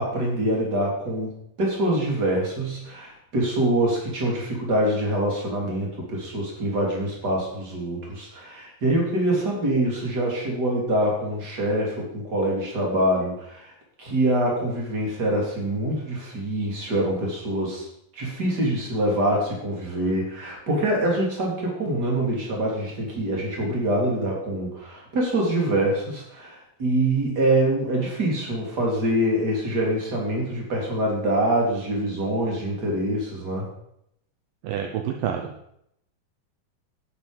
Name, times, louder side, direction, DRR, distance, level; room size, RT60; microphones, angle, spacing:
voice 1, 0.0-13.7 14.0-17.9 18.1-33.7, right 1 dB, 25° right, -1 dB, 3.6 m, -25 dB
voice 2, 34.6-35.7, right 9 dB, 75° right, 4 dB, 2.4 m, -29 dB
12.0 x 9.3 x 5.2 m, 0.75 s
omnidirectional pair, 4.3 m